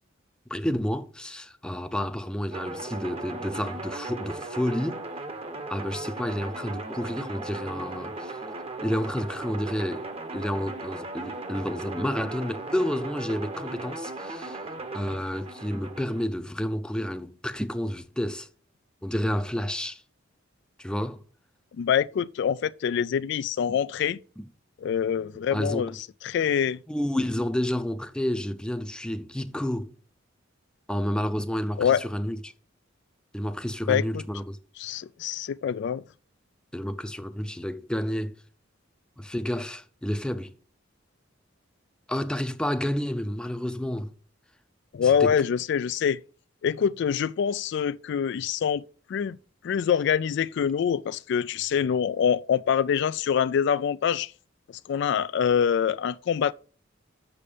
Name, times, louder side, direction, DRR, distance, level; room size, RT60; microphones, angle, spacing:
voice 1, 0.5-5.0 5.7-8.4 8.8-14.6 14.9-18.5 19.0-20.0 20.8-21.2 24.4-24.5 25.5-25.9 26.9-29.9 30.9-32.5 33.3-34.6 36.7-38.4 39.2-40.5 42.1-44.1 45.0-45.3, equal, 5° left, 0.6 m, -30 dB
sound 1, 2.5-16.2, right 2 dB, 30° right, 1.0 m, -37 dB
voice 2, 21.8-24.2 24.8-25.9 26.2-26.8 31.8-32.0 33.9-34.2 34.8-36.0 44.9-46.2 46.6-48.8 49.1-49.4 49.6-54.3 54.9-56.5, left 8 dB, 65° left, 0.3 m, -25 dB
6.9 x 6.6 x 5.0 m
head